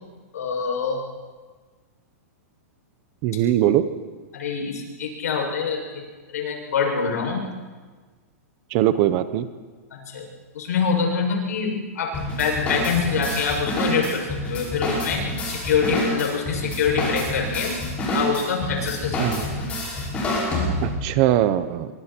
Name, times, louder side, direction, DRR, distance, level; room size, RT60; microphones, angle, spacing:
voice 1, 0.3-1.0 4.3-6.0 6.3-7.5 9.9-10.3 10.5-17.8 18.1-19.2, left 5 dB, 85° left, 0 dB, 7.0 m, -25 dB
voice 2, 3.2-3.8 8.7-9.5 19.2-19.4 20.8-21.9, right 12 dB, 25° right, 13 dB, 0.8 m, -21 dB
sound 1, 12.1-21.1, left 1 dB, 15° left, 6.0 m, -27 dB
25.5 x 24.0 x 4.5 m, 1.4 s
supercardioid pair, 180°, 8 cm